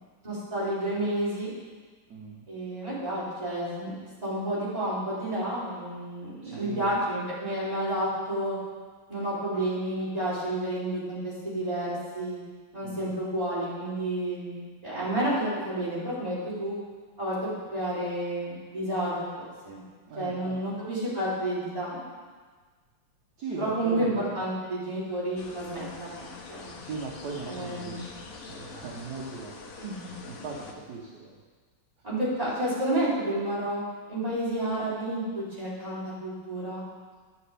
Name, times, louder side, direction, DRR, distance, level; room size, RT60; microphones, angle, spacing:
voice 1, 0.2-1.5 2.5-3.9 4.2-8.6 9.1-11.9 12.1-12.4 12.7-16.7 17.2-19.8 20.2-22.0 23.6-26.7 27.4-28.1 29.8-30.1 32.0-33.8 34.1-36.8, right 1 dB, 20° right, -10 dB, 3.0 m, -30 dB
voice 2, 2.1-2.5 6.4-7.0 12.8-13.1 20.1-20.6 23.4-24.2 26.8-29.7 30.2-31.3, right 4 dB, 60° right, -3 dB, 1.4 m, -39 dB
sound 1, 25.4-30.7, left 4 dB, 70° left, 0.7 m, -45 dB
9.8 x 7.1 x 3.3 m, 1.4 s
omnidirectional pair, 2.2 m